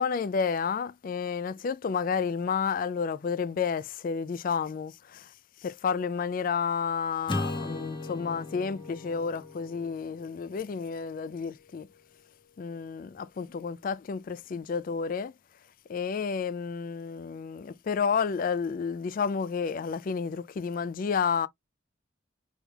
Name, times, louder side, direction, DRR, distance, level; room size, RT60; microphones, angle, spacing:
voice 1, 0.0-5.3 5.6-11.9 12.6-15.3 15.9-21.5, left 6 dB, 45° left, 0.3 m, -31 dB
Acoustic guitar / Strum, 7.3-11.7, left 2 dB, 25° left, 0.9 m, -38 dB
6.2 x 3.5 x 2.3 m
head